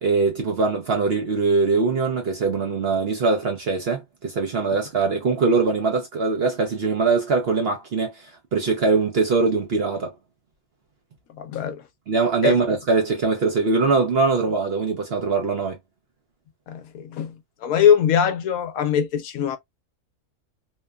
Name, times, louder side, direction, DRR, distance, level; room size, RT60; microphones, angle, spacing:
voice 1, 0.0-10.1 12.1-15.8, right 4 dB, 55° right, 0.7 m, -22 dB
voice 2, 11.4-11.8 12.4-12.5 16.7-17.4 17.6-19.6, left 8 dB, 75° left, 1.0 m, -21 dB
3.0 x 2.2 x 2.2 m
omnidirectional pair, 1.6 m